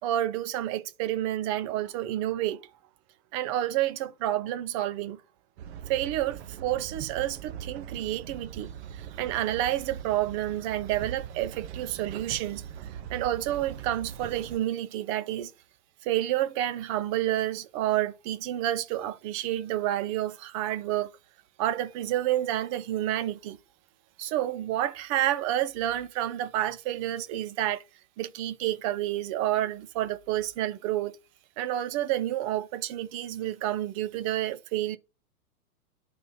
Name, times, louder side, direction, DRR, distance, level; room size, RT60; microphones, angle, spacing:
voice 1, 0.0-2.6 3.3-5.2 5.9-12.6 13.1-15.5 16.0-21.1 21.6-23.6 24.2-27.8 28.2-31.1 31.6-35.0, right 13 dB, 25° right, 0.5 m, -29 dB
sound 1, 5.6-14.6, right 9 dB, 45° right, 1.0 m, -41 dB
11.0 x 4.2 x 5.4 m
figure-of-eight pair, 115°, 46 cm